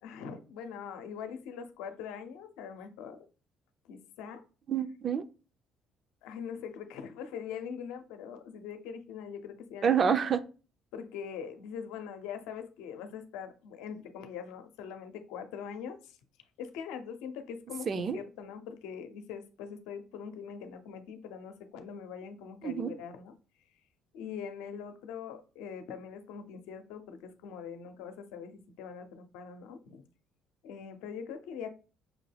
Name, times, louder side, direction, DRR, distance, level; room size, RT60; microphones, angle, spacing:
voice 1, 0.0-3.3 3.8-4.4 6.2-9.9 10.9-16.2 16.6-23.3 24.1-30.0 30.6-31.7, left 7 dB, 85° left, 8 dB, 0.6 m, -42 dB
voice 2, 4.7-5.3 9.8-10.4 17.9-18.2 22.6-22.9, right 7 dB, 40° right, 12 dB, 0.5 m, -27 dB
5.9 x 2.2 x 3.3 m, 0.34 s
cardioid pair, 90°, 0 cm